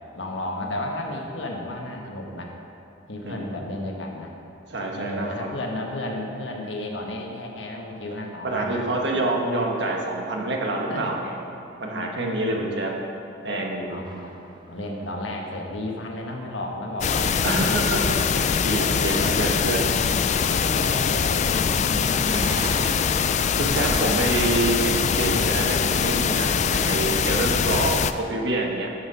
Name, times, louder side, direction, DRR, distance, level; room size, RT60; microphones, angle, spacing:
voice 1, 0.1-2.5 3.1-4.3 4.9-9.0 10.9-11.1 11.8-12.6 13.8-14.3 14.7-18.2 18.6-18.7 18.9-19.5 20.4-22.9, left 1 dB, 75° left, 1 dB, 1.4 m, -33 dB
voice 2, 4.7-5.5 8.4-11.3 11.8-13.0 13.4-13.9 17.4-18.0 18.4-19.9 23.6-28.9, right 2 dB, 60° right, 0 dB, 1.5 m, -27 dB
sound 1, 14.0-15.5 22.2-26.2, right 1 dB, 25° right, 1.0 m, -37 dB
sound 2, 17.0-28.1, left 6 dB, 40° left, 0.3 m, -23 dB
14.0 x 5.8 x 5.6 m, 2.7 s
head